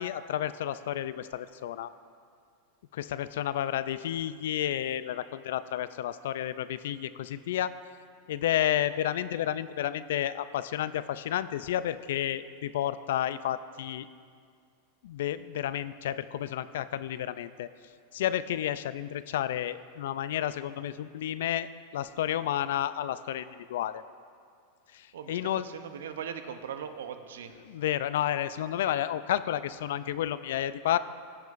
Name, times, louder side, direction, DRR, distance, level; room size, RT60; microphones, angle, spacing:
voice 1, 0.0-1.9 2.9-7.8 8.3-14.1 15.0-17.7 18.1-21.7 21.9-24.0 24.9-25.7 27.6-31.0, left 11 dB, 75° left, 15 dB, 0.3 m, -31 dB
voice 2, 25.6-27.6, right 8 dB, 85° right, 9 dB, 0.6 m, -39 dB
16.0 x 6.0 x 2.5 m, 2.2 s
hypercardioid pair, 120°, 0 cm